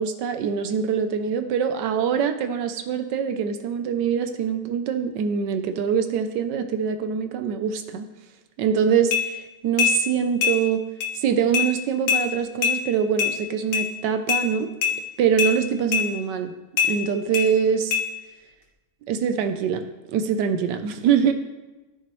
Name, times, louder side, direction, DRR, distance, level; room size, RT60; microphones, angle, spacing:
voice 1, 0.0-8.1 8.6-10.8 11.1-14.7 15.2-16.5 16.9-17.9 19.1-19.8 20.1-21.3, right 7 dB, 75° right, 8 dB, 1.2 m, -24 dB
sound 1, 9.1-9.2 9.8-10.0 10.4-10.6 11.0-11.1 11.5-11.7 12.1-12.2 12.6-12.8 13.2-13.3 13.7-13.9 14.3-14.4 14.8-14.9 15.4-15.5 15.9-16.1 16.8-16.9 17.3-17.5 17.9-18.0, left 8 dB, 80° left, 1.7 m, -21 dB
13.5 x 6.0 x 3.1 m, 1.1 s
omnidirectional pair, 2.0 m